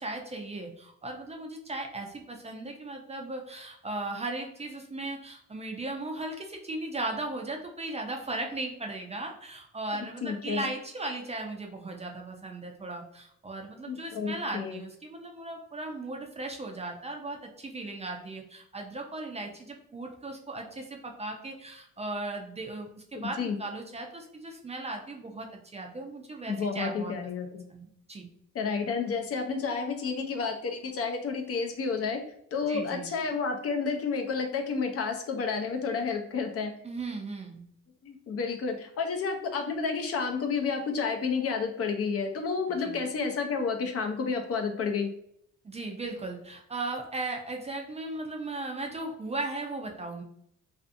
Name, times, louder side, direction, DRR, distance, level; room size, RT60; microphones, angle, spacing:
voice 1, 0.0-27.1 27.7-28.3 32.7-33.1 36.8-37.6 42.8-43.0 45.6-50.2, right 2 dB, 20° right, 2 dB, 0.4 m, -37 dB
voice 2, 10.2-10.7 13.9-14.8 23.1-23.6 26.5-27.6 28.5-32.2 32.5-36.7 38.0-45.1, left 5 dB, 50° left, 4 dB, 0.5 m, -30 dB
2.5 x 2.4 x 2.5 m, 0.69 s
cardioid pair, 90°, 30 cm